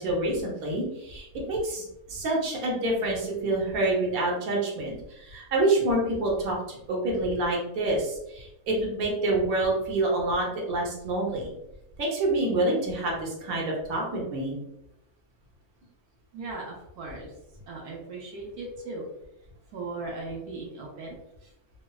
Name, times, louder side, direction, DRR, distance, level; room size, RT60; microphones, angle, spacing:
voice 1, 0.0-11.5 12.0-14.5, right 2 dB, 70° right, -2 dB, 1.2 m, -27 dB
voice 2, 16.3-17.3 17.7-19.0 19.7-21.2 21.4-21.5, right 3 dB, 90° right, -2 dB, 1.2 m, -38 dB
3.1 x 2.1 x 2.2 m, 0.86 s
omnidirectional pair, 1.6 m